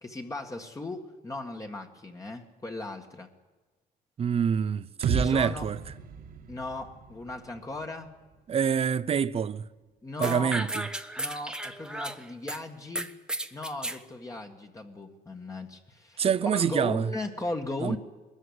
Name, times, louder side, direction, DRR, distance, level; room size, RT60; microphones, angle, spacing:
voice 1, 0.0-3.3 5.1-5.7 6.5-8.1 10.0-10.6 11.2-13.1 13.5-18.0, left 2 dB, 20° left, 1.8 m, -37 dB
voice 2, 4.2-5.8 8.5-9.6 10.2-10.9 16.2-17.1 17.8-18.0, right 7 dB, 35° right, 0.7 m, -26 dB
sound 1, 5.0-8.9, right 5 dB, 60° right, 1.9 m, -35 dB
sound 2, 10.2-12.6 13.0-14.0, right 1 dB, 5° right, 1.0 m, -34 dB
21.0 x 14.0 x 9.8 m
cardioid pair, 110°, 17 cm